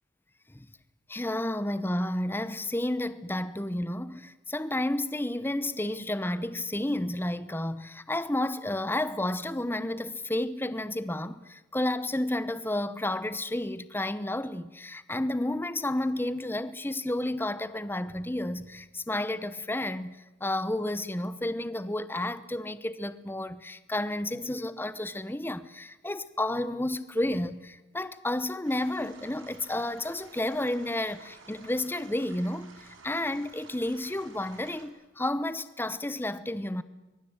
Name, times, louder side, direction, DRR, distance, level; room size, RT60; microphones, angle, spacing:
voice 1, 1.1-36.8, left 1 dB, 10° left, 0.9 m, -31 dB
sound 1, 28.6-34.9, right 4 dB, 75° right, 4.7 m, -53 dB
23.5 x 23.0 x 8.9 m
head